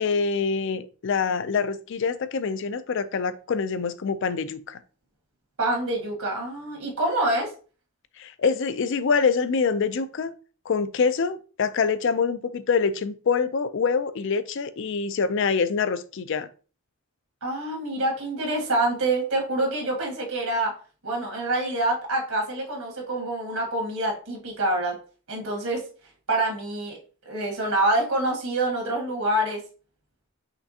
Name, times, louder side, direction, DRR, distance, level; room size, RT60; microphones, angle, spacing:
voice 1, 0.0-4.8 8.2-10.3 10.7-16.5, left 5 dB, 55° left, 0.4 m, -25 dB
voice 2, 5.6-7.5 17.4-20.7 21.0-25.0 25.3-25.8 26.3-27.0 27.2-29.6, right 1 dB, 75° right, 1.6 m, -26 dB
5.8 x 3.2 x 2.7 m
head